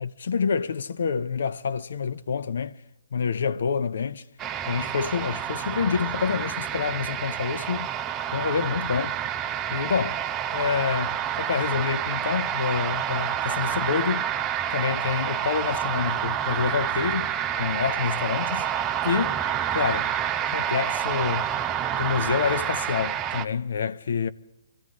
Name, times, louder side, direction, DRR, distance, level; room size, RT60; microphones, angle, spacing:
voice 1, 0.0-2.8 3.1-4.2 4.7-7.9 8.3-9.2 9.7-10.2 10.5-14.3 14.7-17.3 17.6-18.7 19.0-19.4 19.7-20.1 20.5-21.5 22.0-24.3, left 6 dB, 70° left, 0.5 m, -27 dB
sound 1, 4.4-23.5, right 10 dB, 20° right, 0.6 m, -28 dB
23.5 x 14.5 x 3.7 m
hypercardioid pair, 135°, 0 cm